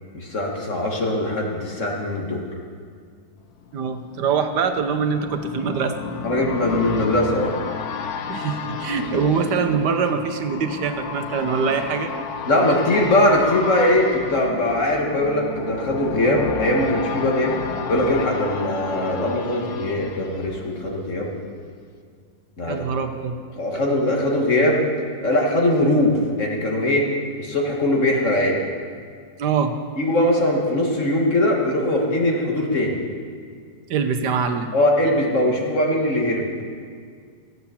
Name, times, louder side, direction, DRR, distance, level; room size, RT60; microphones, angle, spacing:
voice 1, 0.1-2.4 6.2-7.6 12.5-17.6 17.9-21.3 22.6-22.8 23.6-24.8 25.2-27.1 27.4-28.6 30.0-33.0 34.7-36.4, left 1 dB, 50° left, -1 dB, 2.1 m, -21 dB
sound 1, 3.5-21.3 21.7-21.8, left 5 dB, 70° left, 1.3 m, -32 dB
voice 2, 3.7-6.0 8.3-12.1 22.7-23.3 29.4-29.8 33.9-34.7, right 6 dB, 90° right, 7 dB, 1.5 m, -23 dB
15.0 x 8.1 x 7.1 m, 2.1 s
omnidirectional pair, 1.8 m